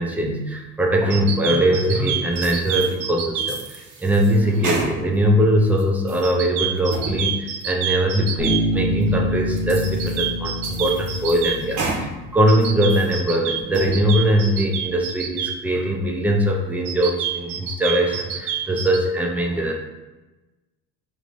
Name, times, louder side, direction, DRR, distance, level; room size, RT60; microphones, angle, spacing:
voice 1, 0.0-3.6 4.0-19.8, equal, 5° right, 1 dB, 0.6 m, -21 dB
sound 1, 1.1-3.5 6.2-8.6 9.8-11.6 12.5-15.5 16.8-19.0, right 9 dB, 90° right, 0.6 m, -27 dB
sound 2, 2.4-3.0 3.4-5.3 5.7-6.3 6.8-7.2 7.6-7.7 8.3-8.4 9.0-9.1 9.6-10.3 10.6-12.1 12.5-13.1 13.6-14.0, right 3 dB, 60° right, 0.9 m, -32 dB
Bass guitar, 8.4-12.1, equal, 20° left, 1.2 m, -26 dB
4.7 x 3.1 x 2.5 m, 1.1 s
cardioid pair, 110°, 31 cm